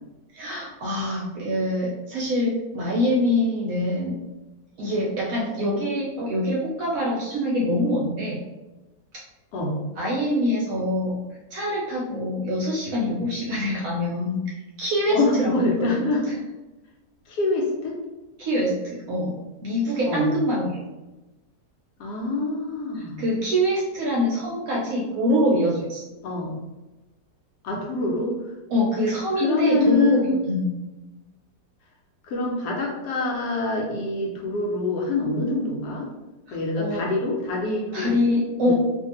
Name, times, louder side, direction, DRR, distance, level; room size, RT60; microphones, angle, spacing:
voice 1, 0.3-4.2 4.8-8.4 9.1-9.2 10.0-11.2 11.5-14.5 14.8-16.0 18.4-20.8 23.2-26.0 28.7-30.7 36.5-37.0 37.9-38.7, equal, 70° right, -3 dB, 0.8 m, -24 dB
voice 2, 15.1-16.2 17.3-18.0 20.1-20.3 22.0-23.2 26.2-26.6 27.6-28.5 29.3-30.3 32.3-36.1 36.5-38.7, left 2 dB, 70° left, -2 dB, 1.1 m, -25 dB
2.7 x 2.5 x 2.8 m, 1.1 s
omnidirectional pair, 1.9 m